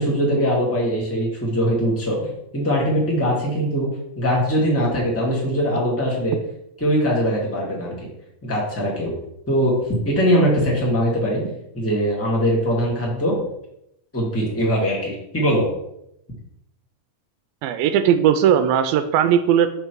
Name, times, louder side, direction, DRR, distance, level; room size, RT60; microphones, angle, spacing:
voice 1, 0.0-3.9 4.1-6.4 6.8-7.9 8.4-9.1 9.5-11.4 11.7-13.3 14.1-15.7, equal, 10° left, -3 dB, 0.8 m, -21 dB
voice 2, 17.6-19.7, right 9 dB, 85° right, 9 dB, 2.3 m, -18 dB
6.7 x 5.8 x 4.6 m, 0.79 s
omnidirectional pair, 4.2 m